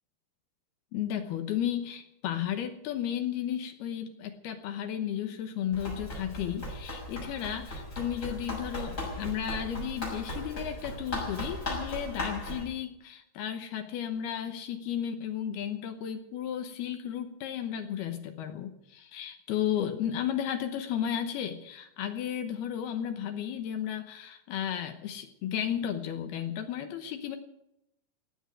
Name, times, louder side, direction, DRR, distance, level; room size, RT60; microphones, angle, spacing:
voice 1, 0.9-27.4, left 10 dB, 70° left, 7 dB, 2.6 m, -34 dB
Run, 5.7-12.6, left 1 dB, 20° left, 6.7 m, -37 dB
17.5 x 8.8 x 9.0 m, 0.81 s
omnidirectional pair, 5.5 m